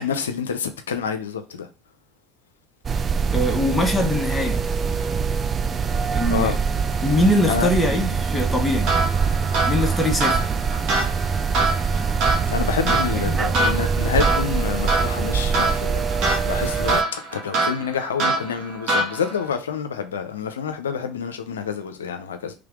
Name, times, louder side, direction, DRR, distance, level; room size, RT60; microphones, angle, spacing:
voice 1, 0.0-1.7 6.3-6.6 7.5-7.7 12.5-16.0 16.4-22.5, left 7 dB, 90° left, 0.4 m, -27 dB
sound 1, 2.8-17.0, right 5 dB, 35° right, 0.4 m, -24 dB
voice 2, 3.3-4.6 6.1-6.6 7.0-8.9 9.7-10.4 13.2-13.4, left 1 dB, 10° left, 1.2 m, -22 dB
sound 2, 8.8-19.5, right 2 dB, 60° right, 1.4 m, -25 dB
3.4 x 3.3 x 3.5 m
hypercardioid pair, 80°, 0 cm